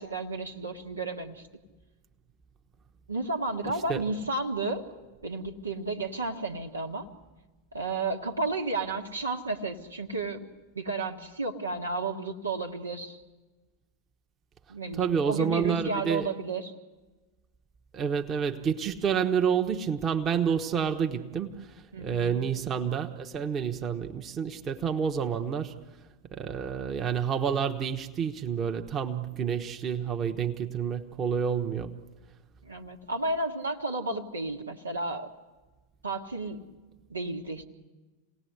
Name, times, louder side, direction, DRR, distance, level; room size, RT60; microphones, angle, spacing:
voice 1, 0.0-1.4 3.1-4.9 5.2-7.1 7.7-10.5 10.8-13.2 14.7-16.7 21.9-22.4 32.6-35.3 36.0-36.6 37.1-37.7, right 3 dB, 80° right, 1.7 m, -32 dB
voice 2, 15.0-16.3 17.9-21.5 22.0-25.7 26.3-31.9, right 7 dB, 25° right, 1.3 m, -29 dB
28.0 x 18.0 x 8.1 m
figure-of-eight pair, 90°, 0 cm